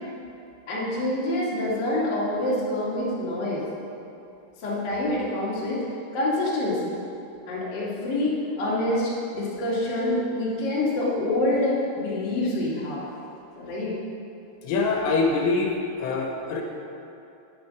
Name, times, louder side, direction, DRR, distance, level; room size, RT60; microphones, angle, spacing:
voice 1, 0.7-3.6 4.6-5.9 6.1-6.9 7.5-13.0 13.5-13.9, left 1 dB, 40° left, -7 dB, 1.4 m, -26 dB
voice 2, 14.6-16.6, left 3 dB, 85° left, 0 dB, 3.6 m, -24 dB
9.6 x 9.5 x 5.2 m, 2.8 s
omnidirectional pair, 5.7 m